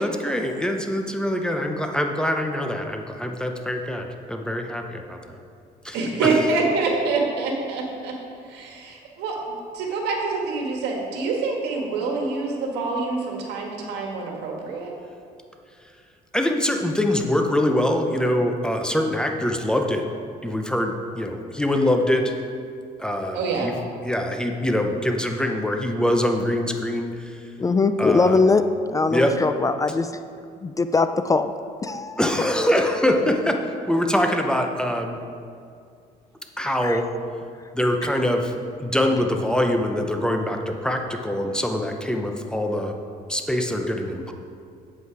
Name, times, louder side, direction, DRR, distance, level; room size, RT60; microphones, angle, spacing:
voice 1, 0.0-5.2 5.8-6.0 6.3-6.4 16.3-20.0 20.4-22.3 23.0-23.7 24.0-27.4 28.0-28.4 29.1-29.3 32.2-33.6 33.9-35.2 36.6-37.0 37.7-38.5 38.8-42.9 43.3-44.3, left 1 dB, 5° left, 3 dB, 0.8 m, -24 dB
voice 2, 5.9-8.1 8.5-14.9 23.3-23.7, right 3 dB, 85° right, 0 dB, 1.7 m, -26 dB
voice 3, 27.6-28.6 28.9-30.1 30.6-31.5 31.8-32.2 36.8-37.0, left 3 dB, 20° left, 10 dB, 0.3 m, -21 dB
8.3 x 7.9 x 4.7 m, 2.3 s
cardioid pair, 110°, 17 cm